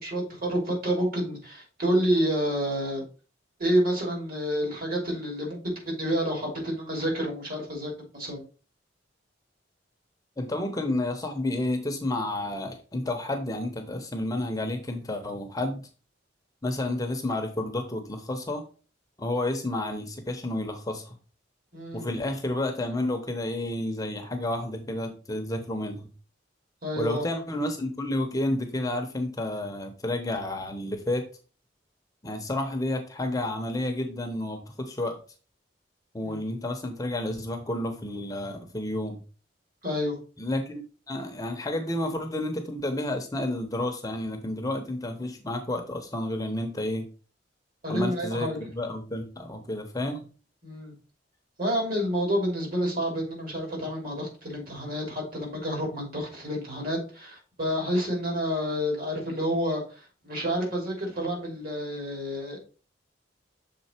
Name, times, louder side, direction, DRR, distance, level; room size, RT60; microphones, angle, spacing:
voice 1, 0.0-3.0 3.6-5.6 5.8-8.4 21.7-22.1 26.8-27.2 36.2-36.4 39.8-40.2 47.8-48.6 50.6-50.9 51.6-62.6, equal, 55° right, 0 dB, 2.9 m, -29 dB
voice 2, 10.4-15.8 16.6-18.6 19.2-21.1 21.9-26.1 27.0-31.3 32.2-35.2 36.1-39.2 40.4-47.1 47.9-50.3, left 1 dB, 20° left, 5 dB, 0.8 m, -30 dB
6.7 x 3.9 x 4.4 m, 0.36 s
head